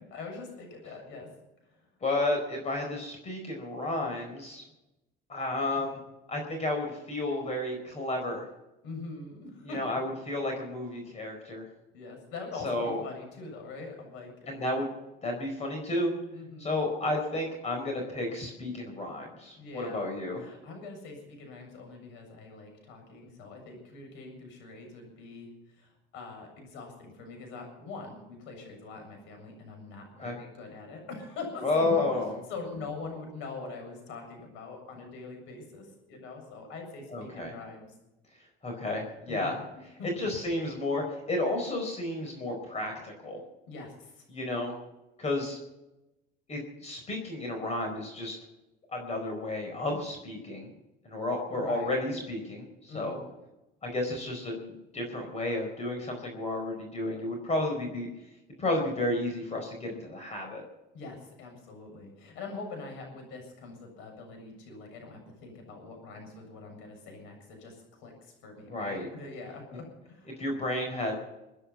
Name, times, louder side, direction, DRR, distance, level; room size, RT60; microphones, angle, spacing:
voice 1, 0.1-1.3 1.7-1.9 5.8-5.9 8.8-9.8 11.9-14.6 16.3-16.8 19.6-20.1 20.4-25.5 25.8-32.0 32.5-37.9 39.3-39.7 40.0-40.1 43.7-44.2 51.5-51.9 52.9-53.2 60.9-70.4, left 3 dB, 80° left, 4 dB, 7.3 m, -43 dB
voice 2, 2.0-4.6 5.3-6.0 6.3-8.4 9.6-11.7 12.6-13.0 14.5-14.9 15.2-16.1 16.6-20.4 30.2-30.4 31.6-32.4 37.1-37.5 38.6-39.6 40.2-43.4 44.3-44.7 45.2-45.6 46.5-48.4 48.9-50.7 51.0-53.2 53.8-58.1 58.6-60.6 68.7-69.1 70.4-71.1, left 2 dB, 35° left, 3 dB, 4.5 m, -32 dB
24.5 x 10.0 x 5.7 m, 0.96 s
cardioid pair, 115°, 20 cm